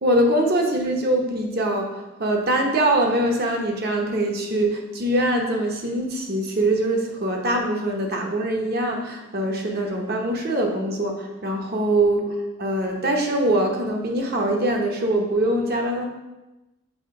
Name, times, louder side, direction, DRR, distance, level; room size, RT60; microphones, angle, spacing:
voice 1, 0.0-12.2 12.6-16.1, right 1 dB, 50° right, 1 dB, 0.9 m, -23 dB
6.6 x 3.3 x 4.8 m, 1.0 s
head